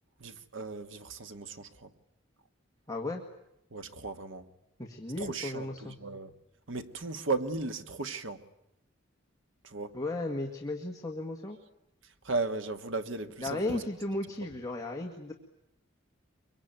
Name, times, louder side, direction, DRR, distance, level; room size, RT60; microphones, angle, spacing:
voice 1, 0.2-1.9 3.7-4.4 5.2-6.3 6.7-8.4 9.6-9.9 12.2-13.8, right 3 dB, 75° right, 1.4 m, -36 dB
voice 2, 2.9-3.3 4.8-6.0 9.9-11.6 13.4-15.3, left 2 dB, 20° left, 1.9 m, -35 dB
23.5 x 23.5 x 9.2 m
head